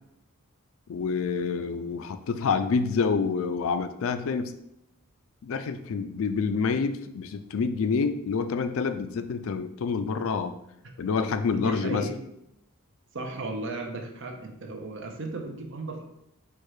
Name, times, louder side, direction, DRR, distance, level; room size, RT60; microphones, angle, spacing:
voice 1, 0.9-4.5 5.4-10.5 11.0-12.1, left 5 dB, 65° left, 9 dB, 0.4 m, -27 dB
voice 2, 11.5-12.1 13.1-16.0, right 2 dB, 55° right, 3 dB, 0.7 m, -35 dB
4.5 x 2.3 x 4.7 m, 0.80 s
head